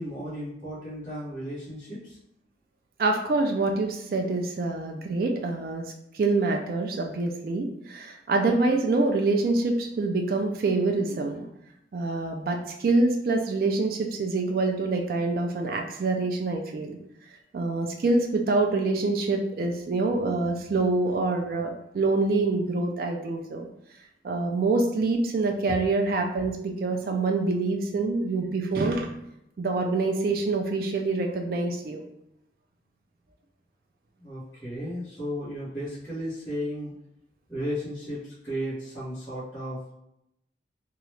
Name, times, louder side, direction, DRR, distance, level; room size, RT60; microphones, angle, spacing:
voice 1, 0.0-2.2 25.7-25.9 34.2-36.9 37.5-39.9, equal, 15° left, -15 dB, 1.1 m, -34 dB
voice 2, 3.0-5.9 6.1-11.5 11.9-17.0 17.5-23.7 24.2-29.2 29.6-32.0, right 3 dB, 55° right, 3 dB, 0.3 m, -26 dB
2.8 x 2.3 x 3.1 m, 0.80 s
head